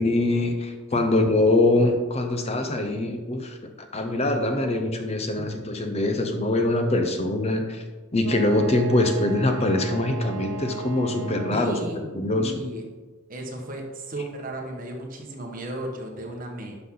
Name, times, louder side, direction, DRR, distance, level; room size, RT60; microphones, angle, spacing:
voice 1, 0.0-7.8 8.1-11.8 12.2-12.6, left 2 dB, 30° left, 5 dB, 0.7 m, -23 dB
voice 2, 0.9-1.2 5.3-5.4 11.5-12.8 13.3-16.8, right 1 dB, 40° right, 0 dB, 1.4 m, -35 dB
Wind instrument woodwind instrument, 8.2-12.0, right 5 dB, 55° right, 0.6 m, -37 dB
11.0 x 5.9 x 3.9 m, 1.3 s
head